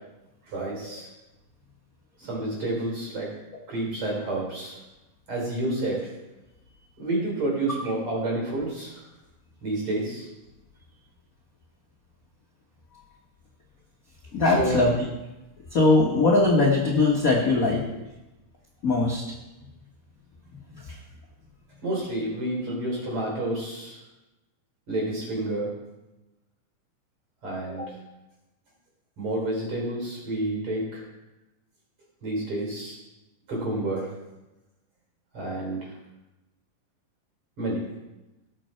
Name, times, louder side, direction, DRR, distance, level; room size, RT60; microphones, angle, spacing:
voice 1, 0.5-1.1 2.3-3.3 3.7-4.8 5.3-6.0 7.0-8.9 9.6-10.2 14.5-14.8 21.8-24.0 24.9-25.7 27.4-27.9 29.2-31.0 32.2-33.0 33.5-34.1 35.3-35.8 37.6-37.8, right 1 dB, 40° right, -2 dB, 4.7 m, -29 dB
voice 2, 14.3-15.1 15.7-17.9 18.8-19.2 20.7-20.9, left 3 dB, 65° left, -2 dB, 0.8 m, -21 dB
17.5 x 6.4 x 4.5 m, 1.0 s
omnidirectional pair, 3.8 m